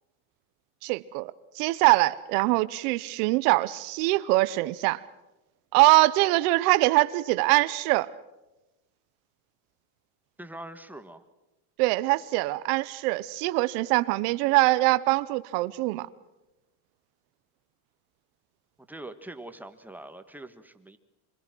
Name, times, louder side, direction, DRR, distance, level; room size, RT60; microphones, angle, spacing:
voice 1, 0.8-5.0 5.7-8.1 11.8-16.1, right 20 dB, 85° right, 1.0 m, -23 dB
voice 2, 10.4-11.2 18.9-21.0, right 1 dB, 5° right, 1.6 m, -43 dB
27.0 x 21.5 x 6.2 m
cardioid pair, 125°, 43 cm